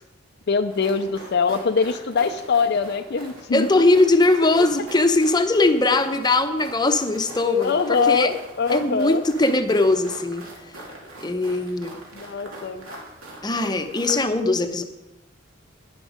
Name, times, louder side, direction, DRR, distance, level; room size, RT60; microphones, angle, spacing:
voice 1, 0.5-3.8 7.6-9.2 12.1-12.9, left 5 dB, 50° left, 7 dB, 0.5 m, -23 dB
sound 1, 0.7-14.3, right 1 dB, 75° right, 3.1 m, -42 dB
voice 2, 3.5-8.3 8.7-10.4 11.2-12.0 13.4-14.8, left 2 dB, 20° left, 8 dB, 0.7 m, -20 dB
11.5 x 10.5 x 5.0 m, 0.98 s
head